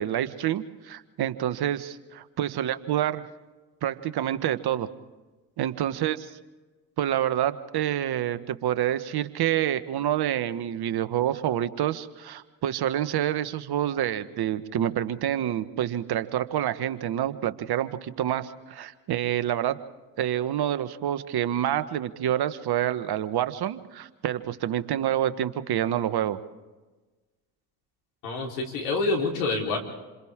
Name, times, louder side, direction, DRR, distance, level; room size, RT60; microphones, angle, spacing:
voice 1, 0.0-3.2 3.8-4.9 5.6-6.3 7.0-19.8 20.2-26.4, right 11 dB, 55° right, 12 dB, 1.4 m, -27 dB
voice 2, 28.2-29.8, left 3 dB, 80° left, 0 dB, 4.2 m, -27 dB
28.5 x 27.0 x 3.7 m, 1.2 s
hypercardioid pair, 55°, 46 cm